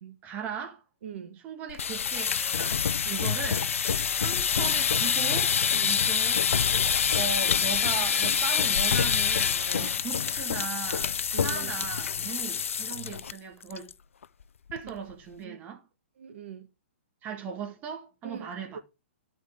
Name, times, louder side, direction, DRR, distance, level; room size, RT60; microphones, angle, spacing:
voice 1, 0.2-0.8 1.4-2.8 3.0-3.6 4.1-5.6 5.9-6.5 7.1-13.9 14.7-15.8 17.2-18.8, right 6 dB, 25° right, 1.9 m, -38 dB
voice 2, 1.0-1.4 3.1-3.3 5.7-6.0 9.7-10.0 11.3-11.8 14.8-15.0 15.4-15.6 16.2-16.7 18.2-18.8, right 8 dB, 65° right, 1.8 m, -42 dB
sound 1, 1.7-13.3 13.6-13.9 14.2-14.3 14.7-15.1, left 7 dB, 85° left, 0.5 m, -26 dB
13.5 x 4.9 x 3.8 m
hypercardioid pair, 145°, 7 cm